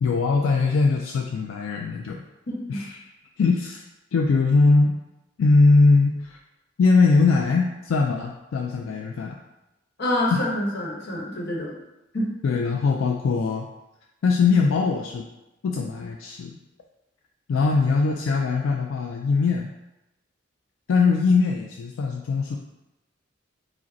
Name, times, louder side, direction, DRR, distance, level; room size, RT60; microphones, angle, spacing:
voice 1, 0.0-2.2 2.7-3.0 3.4-3.8 4.1-5.0 5.4-6.4 6.8-9.4 10.3-10.4 12.4-13.7 14.2-15.3 15.6-16.6 17.5-19.7 20.9-22.6, left 4 dB, 85° left, 1 dB, 0.4 m, -21 dB
voice 2, 2.5-2.8 10.0-11.7 12.1-12.3, left 1 dB, 60° left, -3 dB, 1.1 m, -27 dB
4.9 x 2.1 x 4.0 m, 0.95 s
head